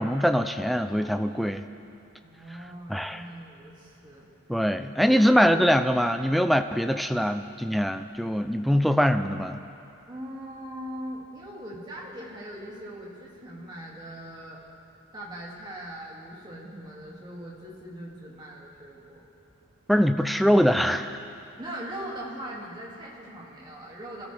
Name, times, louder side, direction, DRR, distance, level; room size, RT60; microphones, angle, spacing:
voice 1, 0.0-1.6 2.9-3.2 4.5-9.6 19.9-21.2, equal, ahead, 8 dB, 0.4 m, -23 dB
voice 2, 2.2-4.3 5.0-5.2 10.1-14.6 15.1-19.2 21.6-24.3, right 1 dB, 20° right, -5 dB, 2.3 m, -40 dB
26.0 x 14.0 x 3.4 m, 2.6 s
head